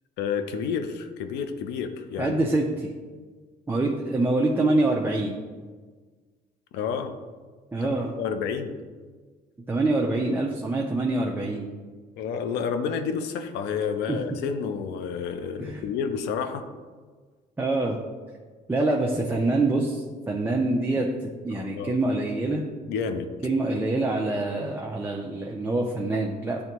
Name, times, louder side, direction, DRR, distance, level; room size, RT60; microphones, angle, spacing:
voice 1, 0.2-2.3 6.7-7.1 7.8-8.7 12.2-16.6 21.7-21.9 22.9-23.3, left 6 dB, 85° left, 8 dB, 0.6 m, -30 dB
voice 2, 2.2-2.9 3.7-5.4 7.7-8.1 9.7-11.7 14.1-14.2 15.6-15.8 17.6-18.0 18.7-21.1 21.4-22.6 23.4-26.6, right 2 dB, 10° right, -1 dB, 0.6 m, -25 dB
9.6 x 3.3 x 3.0 m, 1.4 s
cardioid pair, 110°, 17 cm